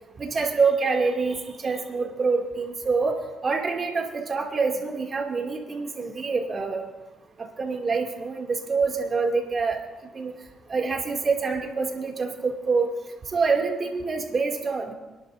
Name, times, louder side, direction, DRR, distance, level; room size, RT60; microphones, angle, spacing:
voice 1, 0.2-1.4 1.6-3.2 3.4-6.9 7.4-9.8 10.1-10.3 10.7-12.9 13.3-14.9, right 4 dB, 40° right, 1 dB, 2.3 m, -26 dB
29.0 x 11.5 x 2.6 m, 1.1 s
cardioid pair, 90°, 0 cm